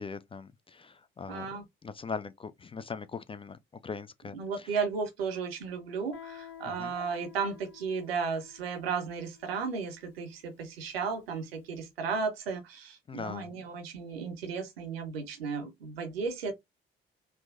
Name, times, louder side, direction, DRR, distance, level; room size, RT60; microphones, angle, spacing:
voice 1, 0.0-1.5 1.8-4.4 6.8-6.9 13.1-13.5, left 5 dB, 20° left, 0.3 m, -40 dB
voice 2, 1.3-1.6 4.3-16.5, right 5 dB, 80° right, 0.8 m, -34 dB
Guitar, 6.1-11.6, left 9 dB, 55° left, 1.3 m, -52 dB
3.5 x 2.5 x 2.5 m
figure-of-eight pair, 45°, 29 cm